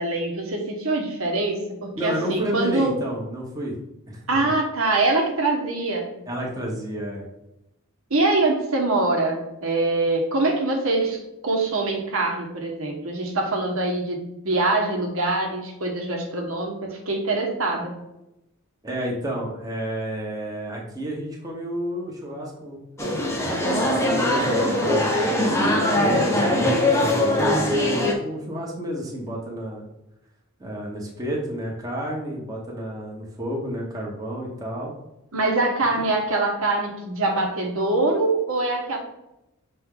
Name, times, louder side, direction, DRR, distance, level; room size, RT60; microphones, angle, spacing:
voice 1, 0.0-2.9 4.3-6.1 8.1-14.2 14.4-17.9 35.3-39.0, right 2 dB, 65° right, 1 dB, 1.2 m, -24 dB
voice 2, 1.9-3.8 4.1-4.5 6.3-7.3 18.8-22.8 23.8-29.9 30.6-34.9, equal, 15° right, -2 dB, 1.1 m, -31 dB
sound 1, 23.0-28.1, left 1 dB, 10° left, 0.8 m, -21 dB
6.3 x 4.3 x 3.8 m, 0.90 s
head